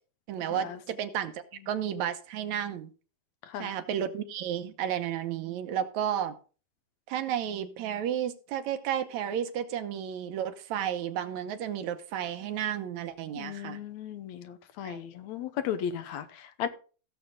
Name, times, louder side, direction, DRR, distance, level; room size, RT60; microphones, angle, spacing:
voice 1, 0.3-2.9 3.6-6.4 7.1-13.8 14.8-15.0, right 9 dB, 75° right, 2.2 m, -32 dB
voice 2, 13.4-16.7, left 9 dB, 75° left, 2.0 m, -36 dB
16.0 x 7.1 x 3.8 m
omnidirectional pair, 3.4 m